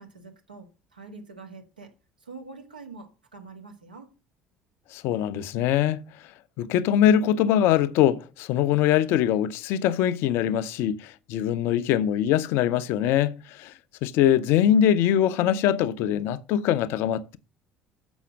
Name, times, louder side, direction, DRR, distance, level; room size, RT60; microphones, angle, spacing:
voice 1, 0.0-1.9 2.2-4.1, right 4 dB, 85° right, 1.5 m, -45 dB
voice 2, 4.9-6.0 6.6-13.7 14.0-17.4, left 10 dB, 60° left, 0.6 m, -23 dB
7.1 x 5.6 x 6.2 m
figure-of-eight pair, 60°, 5 cm